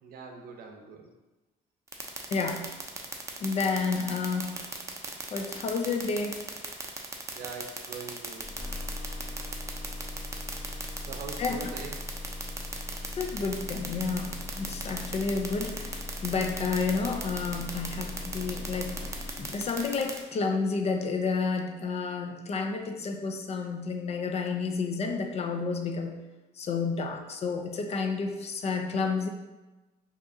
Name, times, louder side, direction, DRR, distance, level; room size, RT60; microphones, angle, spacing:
voice 1, 0.0-1.1 3.0-3.1 7.3-8.5 11.1-12.1, right 5 dB, 60° right, 3 dB, 0.6 m, -42 dB
sound 1, 1.9-20.2, right 3 dB, 15° right, 0.6 m, -36 dB
voice 2, 2.3-2.7 3.4-4.6 5.3-6.4 11.4-11.6 13.2-26.2 26.6-29.3, left 4 dB, 40° left, 5 dB, 0.4 m, -30 dB
sound 2, 8.4-20.0, left 2 dB, 15° left, 0.8 m, -40 dB
4.7 x 2.9 x 2.7 m, 1.1 s
cardioid pair, 110°, 17 cm